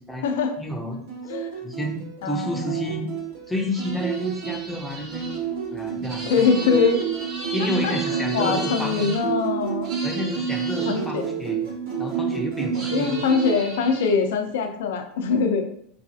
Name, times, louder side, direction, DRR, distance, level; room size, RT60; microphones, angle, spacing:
voice 1, 0.6-1.0 1.6-3.1 3.5-5.3 5.7-6.5 7.5-9.1 10.0-11.6 12.0-13.2, equal, ahead, 0 dB, 0.5 m, -30 dB
sound 1, 1.1-13.6, right 7 dB, 70° right, 1.5 m, -29 dB
voice 2, 2.2-3.1 6.2-7.0 7.6-9.9 10.9-11.3 12.7-15.7, left 5 dB, 90° left, 5 dB, 0.5 m, -23 dB
sound 2, 3.7-9.2 9.8-11.0 12.7-14.2, right 1 dB, 35° right, 0.8 m, -37 dB
3.9 x 2.4 x 2.7 m, 0.65 s
supercardioid pair, 165°, 0 cm